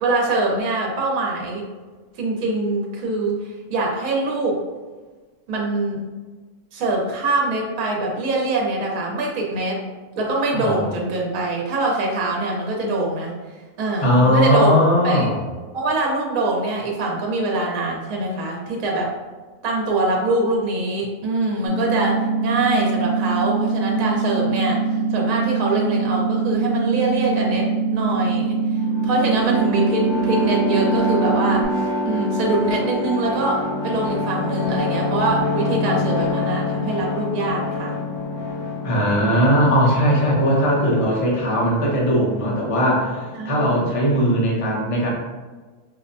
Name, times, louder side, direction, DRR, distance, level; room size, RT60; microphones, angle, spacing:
voice 1, 0.0-1.7 2.2-4.6 5.5-6.0 6.7-9.8 10.2-13.3 13.8-14.8 15.0-15.3 15.7-19.1 19.6-28.6 29.0-31.7 32.0-38.0 43.3-43.9, right 2 dB, 65° right, -1 dB, 1.1 m, -23 dB
voice 2, 10.5-10.9 14.0-15.4 38.8-45.1, equal, 30° left, -4 dB, 0.6 m, -19 dB
sound 1, 21.7-31.7, right 4 dB, 35° right, 0.5 m, -23 dB
sound 2, 28.7-44.2, left 2 dB, 65° left, 1.6 m, -27 dB
4.6 x 2.1 x 2.6 m, 1.3 s
omnidirectional pair, 1.7 m